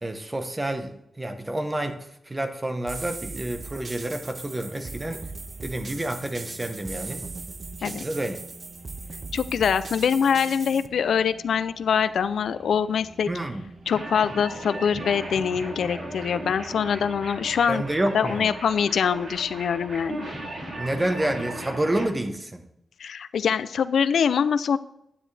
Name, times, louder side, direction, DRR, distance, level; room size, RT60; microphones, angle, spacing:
voice 1, 0.0-2.0 2.3-5.2 5.6-7.2 7.8-8.4 13.3-13.6 17.7-18.5 20.8-22.6, right 1 dB, 20° right, 7 dB, 1.0 m, -29 dB
sound 1, 2.9-10.9, right 3 dB, 40° right, 0.5 m, -39 dB
sound 2, 3.6-22.3, right 2 dB, 85° right, 2.5 m, -48 dB
voice 2, 9.3-13.3 13.9-17.8 18.1-20.2 23.0-24.8, left 7 dB, 85° left, 14 dB, 0.4 m, -24 dB
sound 3, 13.9-22.1, right 1 dB, 60° right, 4.3 m, -37 dB
10.0 x 9.7 x 3.4 m, 0.80 s
wide cardioid pair, 125°, 0 cm